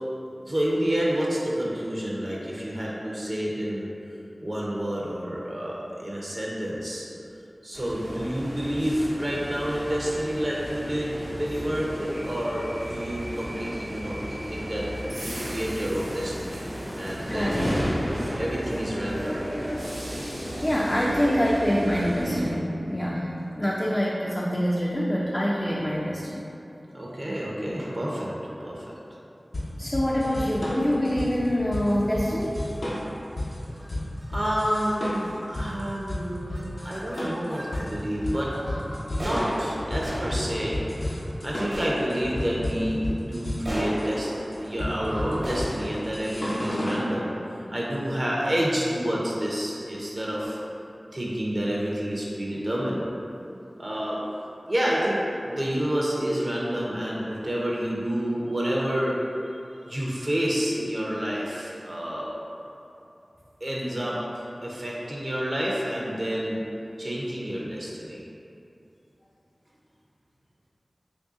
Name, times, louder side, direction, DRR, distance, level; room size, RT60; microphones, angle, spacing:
voice 1, 0.4-3.9 4.4-7.1 7.6-14.9 15.2-16.6 17.0-17.5 18.4-19.4 26.9-28.3 28.6-29.0 34.3-38.5 39.0-41.1 41.4-44.3 44.6-47.3 47.7-50.6 51.1-53.1 53.8-54.2 54.7-59.2 59.9-62.3 63.6-66.6 67.0-68.2, equal, 45° right, -5 dB, 0.6 m, -29 dB
sound 1, 7.7-22.5, equal, 85° right, 0.8 m, -33 dB
voice 2, 17.3-18.0 20.1-20.3 20.6-26.5 29.8-32.6, equal, 25° left, -5 dB, 0.3 m, -25 dB
sound 2, 29.5-47.1, left 1 dB, 85° left, 0.7 m, -32 dB
sound 3, 31.9-32.2 32.7-33.0 33.7-33.9 34.2-34.3 34.6-35.0 35.6-35.9 36.2-37.9 38.3-47.4, equal, 65° right, 1.0 m, -37 dB
3.0 x 2.6 x 3.6 m, 2.8 s
wide cardioid pair, 50°, 0 cm